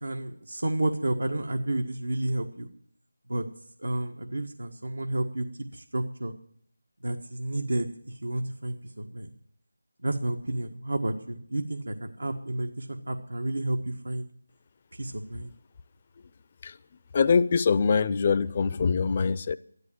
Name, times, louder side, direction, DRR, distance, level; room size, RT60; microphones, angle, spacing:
voice 1, 0.0-2.7 3.3-3.4 3.8-5.4 5.7-6.3 7.0-9.3 10.0-14.3 15.0-15.5, right 1 dB, 90° right, 1.5 m, -31 dB
voice 2, 17.1-19.6, left 5 dB, 30° left, 0.5 m, -23 dB
12.5 x 11.5 x 7.5 m
figure-of-eight pair, 170°, 0 cm